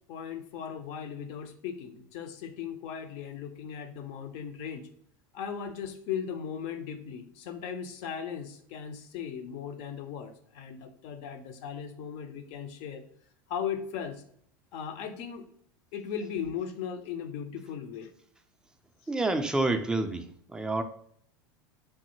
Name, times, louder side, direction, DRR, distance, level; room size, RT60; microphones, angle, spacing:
voice 1, 0.1-4.9 5.3-13.0 13.5-14.2 14.7-15.5 15.9-18.1, left 7 dB, 55° left, 8 dB, 0.5 m, -37 dB
voice 2, 19.1-20.8, right 2 dB, 5° right, 6 dB, 0.3 m, -28 dB
3.2 x 2.1 x 3.0 m, 0.65 s
hypercardioid pair, 80°, 11 cm